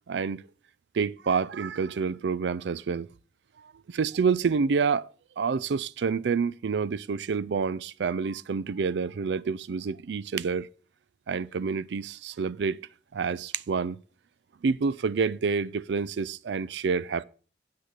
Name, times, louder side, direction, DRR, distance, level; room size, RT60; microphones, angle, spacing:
voice 1, 0.1-0.4 0.9-3.1 3.9-5.0 5.4-10.7 11.3-12.8 13.1-14.0 14.6-17.2, right 5 dB, 75° right, 0.4 m, -28 dB
7.6 x 6.5 x 6.5 m
head